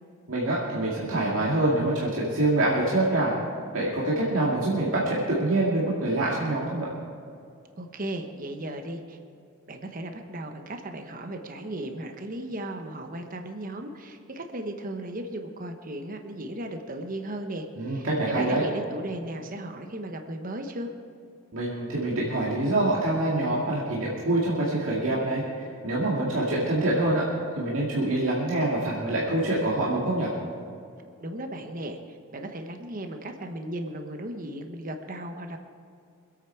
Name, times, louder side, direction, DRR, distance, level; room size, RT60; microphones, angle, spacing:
voice 1, 0.3-3.3 3.7-6.9 17.8-18.6 21.5-27.3 27.6-30.3, right 2 dB, 75° right, -6 dB, 2.3 m, -25 dB
voice 2, 7.8-9.2 9.7-20.9 31.2-35.6, right 1 dB, 40° right, 5 dB, 1.1 m, -36 dB
24.5 x 8.8 x 4.6 m, 2.4 s
head